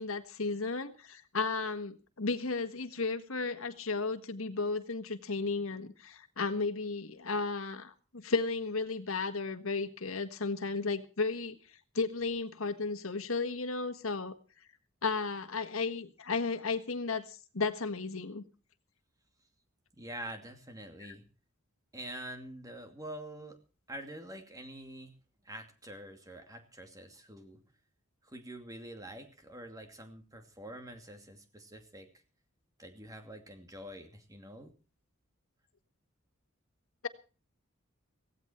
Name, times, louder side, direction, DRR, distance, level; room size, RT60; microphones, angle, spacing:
voice 1, 0.0-11.6 11.9-14.3 15.0-18.4, left 4 dB, 75° left, 9 dB, 1.6 m, -34 dB
voice 2, 19.9-21.3 21.9-23.6 23.9-25.2 25.4-27.6 28.2-32.1 32.8-34.7, right 1 dB, 15° right, 6 dB, 2.5 m, -46 dB
16.5 x 15.5 x 4.5 m, 0.36 s
head